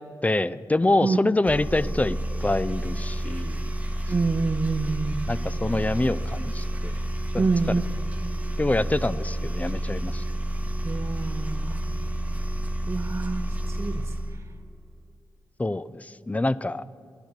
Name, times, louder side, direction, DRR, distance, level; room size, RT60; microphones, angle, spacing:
voice 1, 0.2-3.6 5.3-7.0 7.3-7.5 8.6-10.2 15.6-16.8, left 2 dB, 15° left, 17 dB, 0.3 m, -26 dB
sound 1, 1.4-14.4, right 1 dB, 15° right, 1.1 m, -30 dB
voice 2, 4.1-5.3 7.4-8.1 10.8-11.8 12.9-14.4, right 4 dB, 35° right, 7 dB, 0.5 m, -27 dB
10.5 x 7.6 x 6.6 m, 2.4 s
cardioid pair, 45°, 8 cm